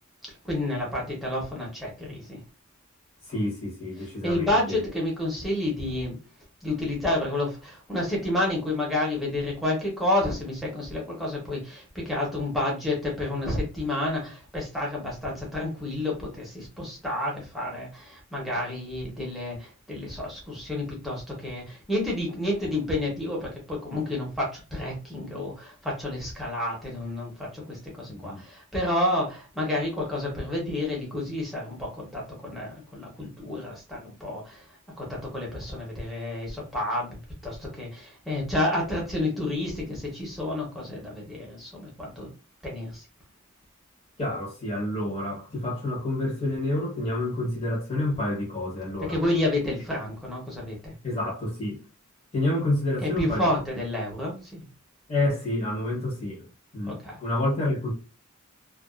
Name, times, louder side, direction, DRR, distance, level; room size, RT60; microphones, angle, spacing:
voice 1, 0.4-2.4 4.0-6.2 6.6-34.6 35.0-42.3 42.6-43.0 49.0-50.9 53.0-54.7 56.8-57.2, left 1 dB, ahead, 0.8 m, -30 dB
voice 2, 3.3-4.8 28.1-28.4 44.2-49.2 51.0-51.8 52.3-53.5 55.1-56.5 56.7-57.9, left 1 dB, 30° left, 1.0 m, -28 dB
2.3 x 2.3 x 2.3 m
head